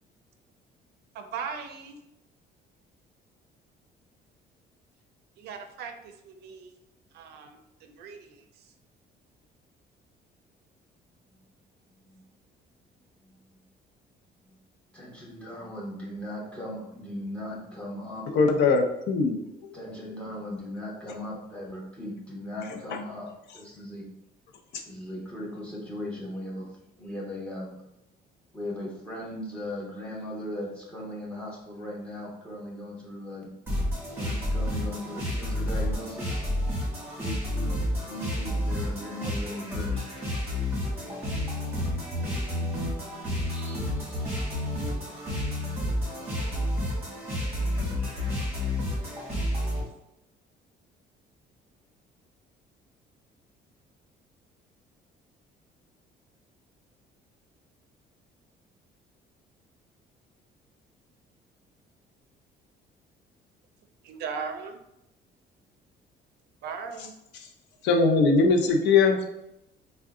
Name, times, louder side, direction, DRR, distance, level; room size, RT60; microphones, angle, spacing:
voice 1, 1.1-2.0 5.4-6.7 7.1-8.7 64.0-64.8 66.6-67.1, right 6 dB, 75° right, 7 dB, 0.5 m, -38 dB
voice 2, 11.9-12.2 13.2-13.6 14.4-14.6 14.9-18.7 19.7-23.3 23.5-24.1 24.9-27.8 28.5-33.5 34.1-36.4 37.1-37.7 38.0-40.3 44.5-44.6, left 1 dB, 5° left, -4 dB, 1.0 m, -38 dB
voice 3, 18.3-19.7 22.9-23.0 24.7-24.8 67.4-67.5 67.8-69.3, left 4 dB, 85° left, 4 dB, 0.6 m, -21 dB
sound 1, 33.7-49.8, left 1 dB, 15° right, 1.4 m, -30 dB
3.6 x 2.2 x 3.5 m, 0.85 s
cardioid pair, 155°, 17 cm